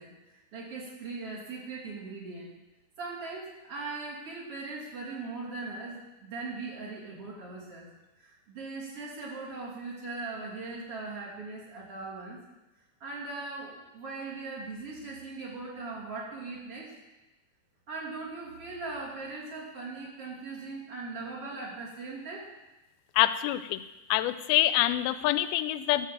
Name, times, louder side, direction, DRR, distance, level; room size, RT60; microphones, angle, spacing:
voice 1, 0.0-2.5 3.0-7.9 8.2-12.4 13.0-16.9 17.9-22.5, right 3 dB, 40° right, -6 dB, 3.3 m, -39 dB
voice 2, 23.2-23.8 24.1-26.1, left 14 dB, 90° left, 13 dB, 2.4 m, -26 dB
13.0 x 5.1 x 7.3 m, 1.0 s
omnidirectional pair, 4.2 m